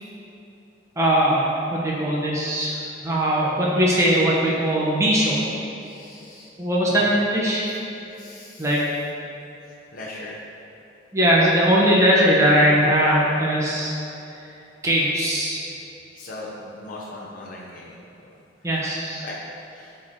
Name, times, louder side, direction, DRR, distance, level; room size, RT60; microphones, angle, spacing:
voice 1, 1.0-2.8 3.0-5.4 6.6-7.7 8.6-8.8 11.1-13.9 14.8-15.6 18.6-19.2, equal, 15° right, -6 dB, 1.2 m, -20 dB
voice 2, 5.8-6.5 6.9-7.1 8.2-8.8 9.9-10.4 16.1-17.9 19.2-19.4 19.7-19.9, left 2 dB, 50° left, -5 dB, 0.9 m, -39 dB
12.5 x 4.4 x 3.8 m, 2.8 s
head